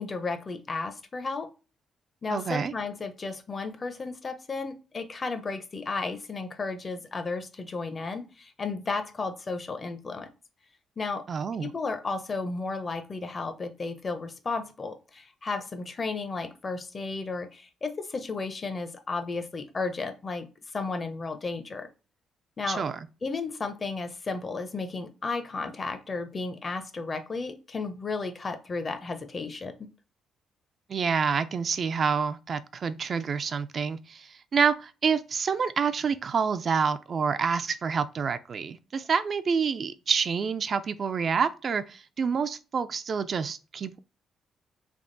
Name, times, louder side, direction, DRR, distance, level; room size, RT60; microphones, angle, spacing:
voice 1, 0.0-1.5 2.2-10.3 11.0-11.3 11.6-20.5 20.7-21.9 22.6-22.8 23.2-29.9, left 3 dB, 35° left, 0.7 m, -33 dB
voice 2, 2.3-2.7 11.3-11.7 22.7-23.0 30.9-44.0, right 6 dB, 50° right, 0.3 m, -28 dB
3.5 x 2.3 x 3.8 m
cardioid pair, 90°, 0 cm